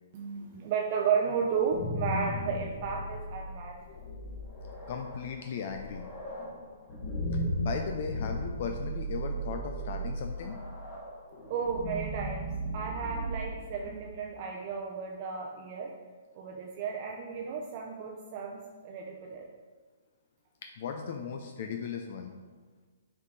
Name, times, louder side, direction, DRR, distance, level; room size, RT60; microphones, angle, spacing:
voice 1, 0.1-3.8 11.5-12.5 12.7-15.9 16.3-19.4, right 6 dB, 35° right, 0 dB, 0.6 m, -33 dB
sound 1, 1.5-14.3, right 1 dB, 30° left, 1.7 m, -36 dB
voice 2, 4.9-6.1 7.3-10.6 20.6-22.3, left 6 dB, 50° left, 4 dB, 0.5 m, -37 dB
7.0 x 4.6 x 3.8 m, 1.4 s
hypercardioid pair, 155°, 0 cm